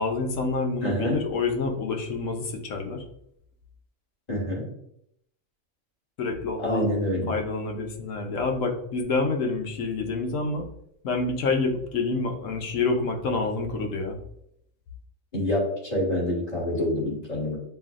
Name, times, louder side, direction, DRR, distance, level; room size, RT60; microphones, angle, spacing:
voice 1, 0.0-3.0 6.2-6.9 7.3-10.6 11.0-14.2, left 3 dB, 75° left, 3 dB, 1.1 m, -27 dB
voice 2, 0.8-1.2 4.3-4.7 6.6-7.3 15.3-17.6, left 1 dB, 30° left, -6 dB, 1.9 m, -26 dB
7.4 x 2.6 x 2.4 m, 0.74 s
omnidirectional pair, 1.4 m